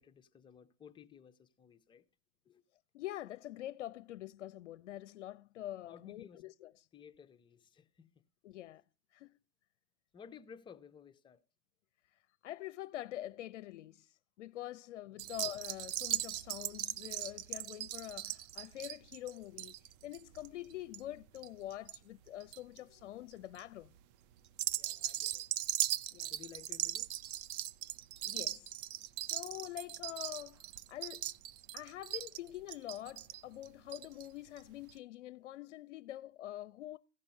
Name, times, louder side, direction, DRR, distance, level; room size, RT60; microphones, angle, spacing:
voice 1, 0.0-2.1 2.5-2.6 5.8-6.4 6.9-8.2 10.1-11.4 15.1-15.3 24.7-25.4 26.3-27.2, left 7 dB, 15° left, 0.6 m, -56 dB
voice 2, 2.9-6.7 8.4-8.8 9.1-9.3 12.4-19.8 20.0-23.9 26.1-26.3 28.2-28.8 29.2-30.6 30.9-31.3 31.7-37.0, left 13 dB, 80° left, 0.5 m, -45 dB
sound 1, 15.2-22.0 22.3-22.8 23.3-23.6 24.5-34.3 34.6-34.7 34.9-35.0, right 13 dB, 40° right, 0.5 m, -39 dB
15.5 x 5.4 x 5.2 m
hypercardioid pair, 120°, 35 cm